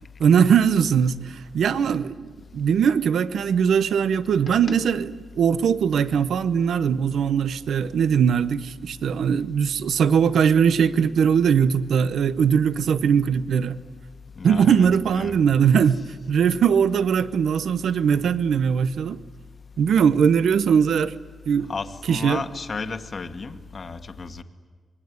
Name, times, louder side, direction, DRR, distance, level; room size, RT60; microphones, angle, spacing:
voice 1, 0.2-13.8 14.4-16.0 16.3-19.2 19.8-21.1 21.5-21.7 22.1-22.4, right 7 dB, 80° right, 0.8 m, -20 dB
voice 2, 14.4-15.4 21.7-24.4, left 4 dB, 40° left, 1.5 m, -34 dB
26.0 x 22.5 x 9.5 m
wide cardioid pair, 135°, 0 cm